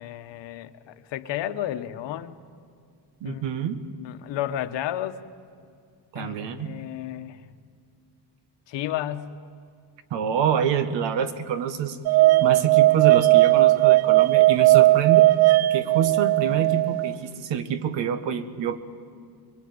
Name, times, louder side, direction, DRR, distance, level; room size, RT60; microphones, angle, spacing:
voice 1, 0.0-2.3 3.2-3.4 3.9-5.2 6.1-7.4 8.7-9.4 12.1-12.5, left 12 dB, 85° left, 10 dB, 1.3 m, -32 dB
voice 2, 3.2-3.8 6.1-6.8 10.1-12.0 12.4-15.3 15.7-18.8, right 8 dB, 85° right, 11 dB, 1.7 m, -26 dB
sound 1, 12.1-17.1, right 18 dB, 60° right, 0.7 m, -17 dB
26.0 x 22.5 x 9.7 m, 2.3 s
cardioid pair, 170°, 42 cm